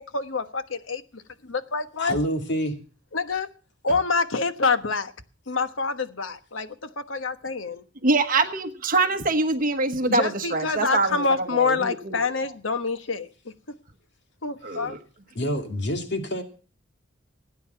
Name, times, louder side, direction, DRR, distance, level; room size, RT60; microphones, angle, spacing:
voice 1, 0.0-2.2 3.1-3.5 3.8-5.1 5.5-7.8 10.0-13.5 14.4-15.0, left 4 dB, 80° left, 1.2 m, -27 dB
voice 2, 2.0-2.7 15.4-16.4, equal, 60° left, 2.6 m, -27 dB
voice 3, 8.0-11.2 11.5-12.2 14.6-15.0, right 3 dB, 45° right, 1.2 m, -24 dB
17.5 x 9.6 x 5.7 m
head